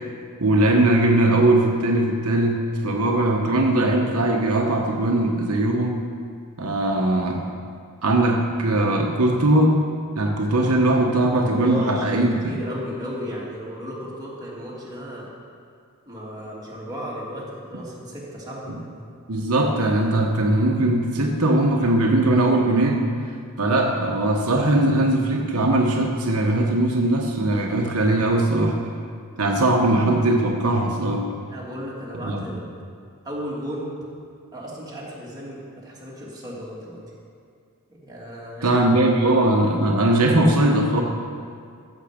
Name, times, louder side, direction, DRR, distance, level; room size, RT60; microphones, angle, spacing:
voice 1, 0.4-6.1 6.6-7.4 8.0-9.8 10.2-12.6 17.7-17.8 19.3-23.1 23.6-28.8 29.4-31.3 32.2-32.5 38.6-41.0, right 1 dB, 80° right, 1 dB, 1.1 m, -20 dB
voice 2, 11.3-15.3 16.1-19.1 31.5-32.7 33.2-33.9 34.5-37.0 37.9-38.8 39.2-39.3, equal, 20° right, -6 dB, 2.6 m, -34 dB
14.5 x 7.3 x 5.1 m, 2.3 s
head